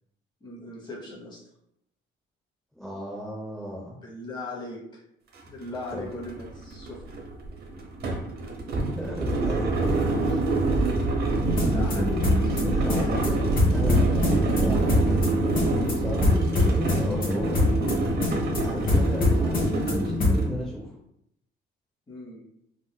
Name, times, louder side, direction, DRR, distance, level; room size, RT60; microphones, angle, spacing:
voice 1, 0.4-1.4 4.0-5.0 5.4-7.2 11.4-13.2 22.1-22.4, left 2 dB, 20° left, -4 dB, 1.1 m, -39 dB
voice 2, 2.7-3.9 5.9-6.1 8.7-10.4 12.6-15.3 15.7-17.6 18.6-21.0, equal, ahead, -4 dB, 0.5 m, -36 dB
sound 1, 5.3-5.4 5.8-20.5, right 2 dB, 50° right, 0.6 m, -26 dB
sound 2, 11.3-20.5, left 1 dB, 45° left, 1.1 m, -25 dB
3.7 x 2.5 x 2.2 m, 0.76 s
cardioid pair, 135°, 21 cm